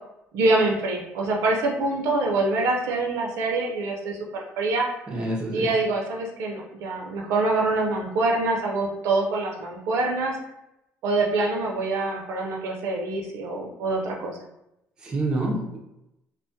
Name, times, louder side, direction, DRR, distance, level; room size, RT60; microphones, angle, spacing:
voice 1, 0.3-4.9 5.5-10.4 11.0-14.4, right 2 dB, 75° right, 0 dB, 0.5 m, -25 dB
voice 2, 5.1-5.7 15.0-15.8, right 2 dB, 15° right, -3 dB, 0.4 m, -27 dB
2.2 x 2.1 x 2.6 m, 0.84 s
cardioid pair, 160°, 5 cm